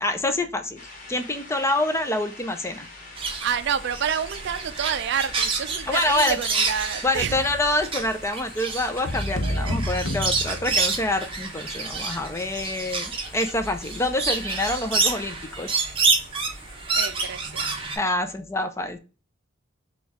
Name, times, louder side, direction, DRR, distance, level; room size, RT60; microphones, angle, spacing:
voice 1, 0.0-0.8 1.1-2.9 5.9-6.4 7.0-15.7 18.0-19.0, left 2 dB, 15° left, 0.5 m, -26 dB
sound 1, 0.8-18.1, left 2 dB, 40° left, 1.2 m, -46 dB
sound 2, 3.2-18.0, right 4 dB, 25° right, 0.9 m, -28 dB
voice 2, 3.4-7.5 9.4-9.8 17.0-17.7, right 8 dB, 60° right, 0.4 m, -29 dB
sound 3, 9.1-11.3, left 1 dB, 70° left, 0.6 m, -29 dB
4.3 x 2.3 x 3.4 m
head